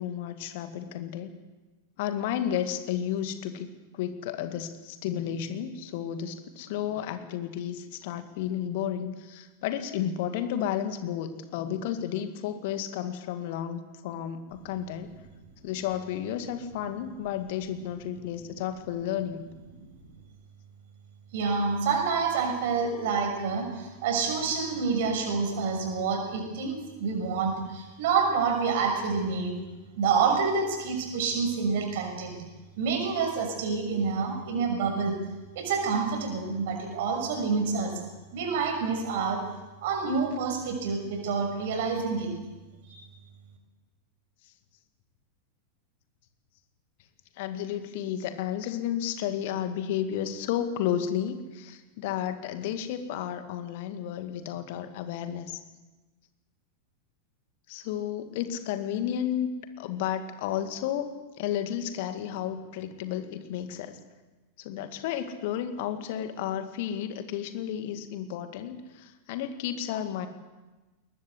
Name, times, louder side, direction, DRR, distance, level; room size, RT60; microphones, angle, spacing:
voice 1, 0.0-1.3 2.0-15.1 15.6-19.4 47.4-55.6 57.7-59.5 59.8-64.0 64.6-70.3, left 10 dB, 50° left, 8 dB, 2.1 m, -32 dB
voice 2, 21.3-29.5 30.0-32.3 32.8-35.2 35.5-37.9 38.3-39.4 39.8-42.3 42.8-43.1, right 5 dB, 55° right, 4 dB, 6.3 m, -28 dB
21.5 x 20.0 x 8.2 m, 1.2 s
figure-of-eight pair, 90°, 0 cm